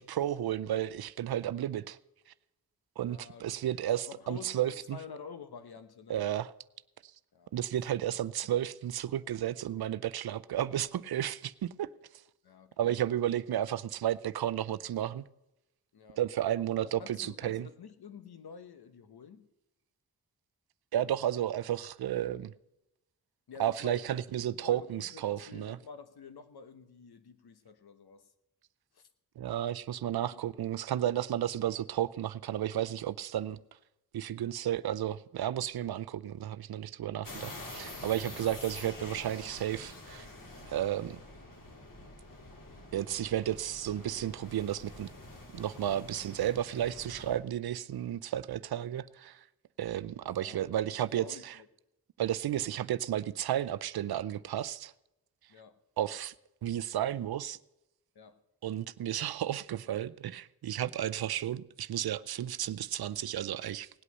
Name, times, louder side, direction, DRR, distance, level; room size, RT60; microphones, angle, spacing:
voice 1, 0.0-2.0 3.0-5.0 6.1-6.5 7.5-11.9 12.8-15.2 16.2-17.7 20.9-22.5 23.6-25.8 29.4-33.6 34.1-40.3 40.6-41.2 42.9-45.1 45.5-49.4 49.8-51.6 52.2-54.9 56.0-56.3 56.6-57.6 58.6-63.9, right 11 dB, 70° right, 0.6 m, -33 dB
voice 2, 3.0-3.8 4.0-6.2 7.3-7.5 8.4-8.5 12.4-13.0 15.9-16.2 16.8-19.5 23.5-24.2 24.5-28.3 28.9-29.1 30.3-30.4 50.2-50.6 51.0-51.7 55.5-55.8 58.1-58.4, left 6 dB, 70° left, 1.2 m, -49 dB
sound 1, 37.2-47.4, left 2 dB, 55° left, 2.6 m, -47 dB
18.0 x 8.3 x 5.5 m
cardioid pair, 45°, 39 cm